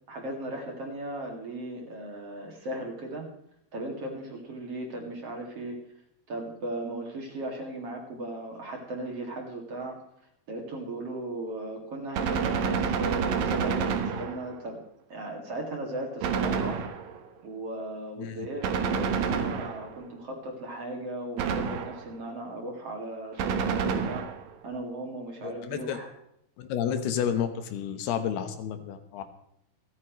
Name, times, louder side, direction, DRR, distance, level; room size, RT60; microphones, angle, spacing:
voice 1, 0.1-3.3 3.7-5.8 6.3-10.0 10.5-14.8 15.1-16.8 17.4-24.3 24.6-26.1, right 1 dB, 45° right, 0 dB, 2.9 m, -37 dB
Gunshot gunfire, 12.1-14.7 16.2-17.3 18.6-20.1 21.4-22.2 23.4-24.5, right 6 dB, 65° right, 2.7 m, -28 dB
voice 2, 25.4-26.0 26.6-29.2, left 8 dB, 85° left, 9 dB, 3.2 m, -31 dB
28.0 x 9.5 x 3.1 m, 0.75 s
omnidirectional pair, 4.5 m